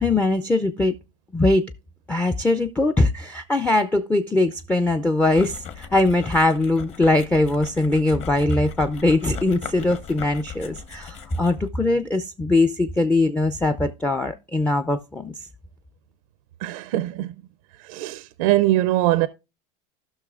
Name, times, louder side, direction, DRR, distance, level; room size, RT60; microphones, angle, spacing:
voice 1, 0.0-0.9 1.3-1.6 2.1-15.3, left 2 dB, 5° left, 0.4 m, -21 dB
sound 1, 5.3-11.7, left 7 dB, 35° left, 1.1 m, -38 dB
voice 2, 16.6-17.3 17.8-19.3, right 15 dB, 70° right, 0.5 m, -22 dB
16.0 x 5.9 x 2.4 m
supercardioid pair, 120°, 18 cm